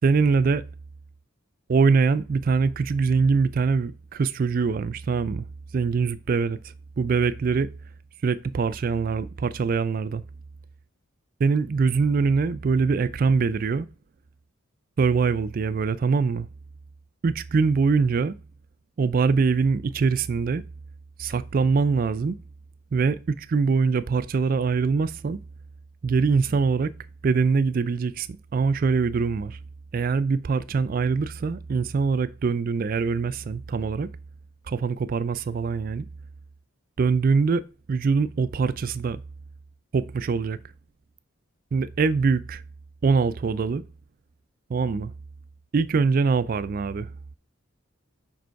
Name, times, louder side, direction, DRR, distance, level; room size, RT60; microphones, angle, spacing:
voice 1, 0.0-0.6 1.7-5.5 5.7-7.7 8.2-10.2 11.4-13.9 15.0-16.5 17.2-18.4 19.0-20.6 21.2-22.4 22.9-25.4 26.0-26.9 27.2-29.6 29.9-34.1 34.7-36.1 37.0-39.2 39.9-40.6 41.7-42.6 43.0-43.8 44.7-45.1 45.7-47.1, right 5 dB, 40° right, 0.3 m, -23 dB
5.3 x 5.0 x 4.6 m
head